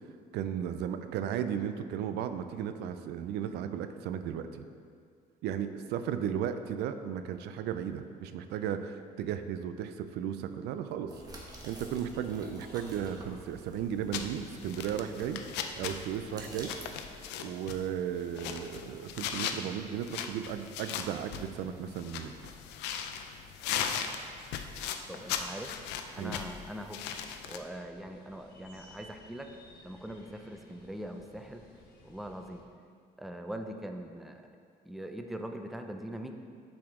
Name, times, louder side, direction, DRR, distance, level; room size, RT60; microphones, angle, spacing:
voice 1, 0.3-4.6 5.4-11.1 11.6-15.4 15.8-16.7 17.4-22.3 26.2-26.3, right 9 dB, 80° right, 9 dB, 0.4 m, -35 dB
sound 1, 11.1-16.9, right 1 dB, 20° right, 1.1 m, -49 dB
sound 2, 14.1-27.6, left 8 dB, 90° left, 0.5 m, -38 dB
voice 2, 25.1-25.7 26.1-27.0 27.5-29.5 29.8-31.6 32.0-32.6 33.2-34.4 34.9-36.3, equal, ahead, 5 dB, 0.4 m, -41 dB
sound 3, 25.6-32.6, left 1 dB, 65° left, 1.4 m, -57 dB
7.2 x 4.9 x 3.7 m, 2.2 s
cardioid pair, 110°, 17 cm